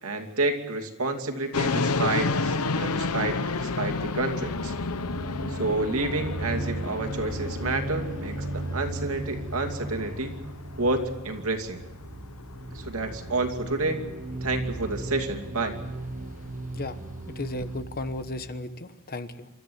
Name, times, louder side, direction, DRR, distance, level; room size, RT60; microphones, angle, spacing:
voice 1, 0.0-3.4 3.6-4.7 5.6-10.4 10.8-11.8 12.7-14.0 14.4-15.8, right 2 dB, 65° right, 4 dB, 2.7 m, -29 dB
sound 1, 1.5-17.8, left 3 dB, 80° left, 0.9 m, -33 dB
sound 2, 3.9-18.6, right 2 dB, 35° right, 0.9 m, -37 dB
voice 2, 17.3-19.5, left 2 dB, 45° left, 10 dB, 1.2 m, -35 dB
28.0 x 13.5 x 9.5 m, 1.0 s
head